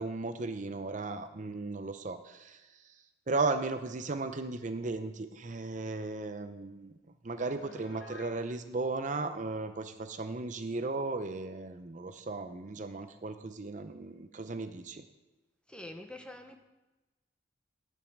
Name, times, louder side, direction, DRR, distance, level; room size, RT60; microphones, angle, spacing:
voice 1, 0.0-2.6 3.3-6.9 7.2-15.0, right 3 dB, 40° right, 9 dB, 0.6 m, -36 dB
Piano, 7.6-8.4, left 2 dB, 80° left, 1.4 m, -49 dB
voice 2, 15.7-16.6, left 1 dB, 5° left, 5 dB, 0.8 m, -45 dB
10.5 x 5.4 x 7.8 m, 1.1 s
head